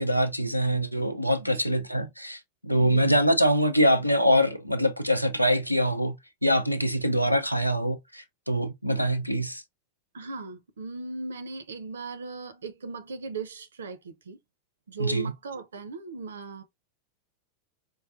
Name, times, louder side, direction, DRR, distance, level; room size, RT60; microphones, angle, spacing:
voice 1, 0.0-6.2 6.4-9.6 15.0-15.3, equal, 90° left, 0.5 m, -24 dB
voice 2, 1.4-1.9 2.8-3.2 10.1-14.4 14.9-16.6, right 4 dB, 65° right, 0.6 m, -38 dB
4.7 x 2.2 x 2.5 m
figure-of-eight pair, 90°, 0 cm